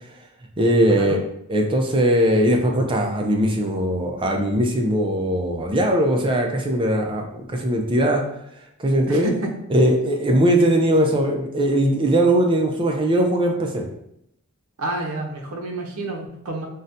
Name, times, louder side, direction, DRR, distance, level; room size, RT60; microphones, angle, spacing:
voice 1, 0.6-1.2 1.5-8.2 8.8-9.3 9.7-13.8, right 1 dB, 25° right, 2 dB, 0.4 m, -20 dB
voice 2, 9.1-9.5 14.8-16.7, right 1 dB, 75° right, 1 dB, 0.6 m, -29 dB
3.9 x 2.1 x 2.6 m, 0.77 s
head